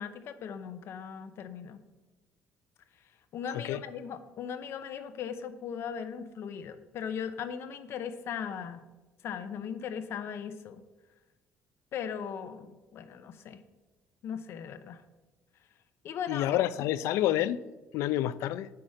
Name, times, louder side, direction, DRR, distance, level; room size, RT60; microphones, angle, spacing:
voice 1, 0.0-1.8 3.3-8.8 9.2-10.8 11.9-13.6 14.2-15.0 16.0-16.6, left 7 dB, 60° left, 0.8 m, -38 dB
voice 2, 16.3-17.6 17.9-18.7, left 13 dB, 85° left, 0.4 m, -28 dB
8.6 x 5.8 x 6.4 m
cardioid pair, 130°, 5 cm